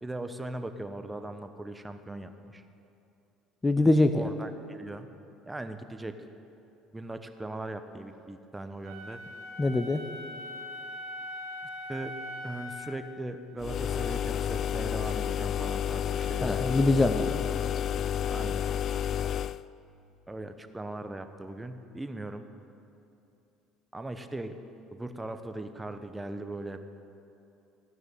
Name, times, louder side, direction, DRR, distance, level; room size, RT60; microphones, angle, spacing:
voice 1, 0.0-2.6 4.1-5.1 5.5-6.1 6.9-9.2 11.9-16.7 17.3-17.4 18.0-18.6 20.3-22.4 23.9-24.6 24.9-26.8, right 2 dB, 15° right, 8 dB, 0.9 m, -39 dB
voice 2, 3.6-4.3 9.6-10.0 16.4-17.4, left 2 dB, 15° left, 8 dB, 0.7 m, -23 dB
Wind instrument woodwind instrument, 8.8-13.0, left 1 dB, 75° right, 2.7 m, -41 dB
sound 1, 13.6-19.6, left 9 dB, 50° left, 0.3 m, -30 dB
14.5 x 6.3 x 9.0 m, 2.7 s
supercardioid pair, 75°, 0 cm